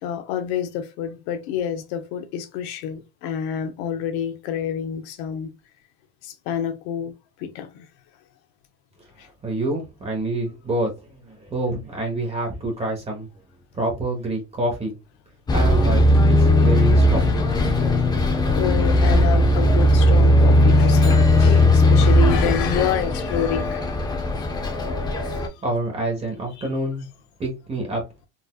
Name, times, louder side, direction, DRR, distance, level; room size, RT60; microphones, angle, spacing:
voice 1, 0.0-5.5 6.2-7.1 7.4-7.9 9.2-9.3 18.5-24.1 25.2-25.4 26.6-26.7, left 8 dB, 65° left, 1.0 m, -28 dB
voice 2, 9.2-13.3 13.7-14.9 15.5-17.2 17.5-17.6 25.6-27.0 27.4-28.0, right 1 dB, 20° right, 1.1 m, -27 dB
Bus, 15.5-25.5, left 1 dB, 10° left, 0.6 m, -17 dB
4.1 x 2.6 x 2.3 m
supercardioid pair, 120°, 34 cm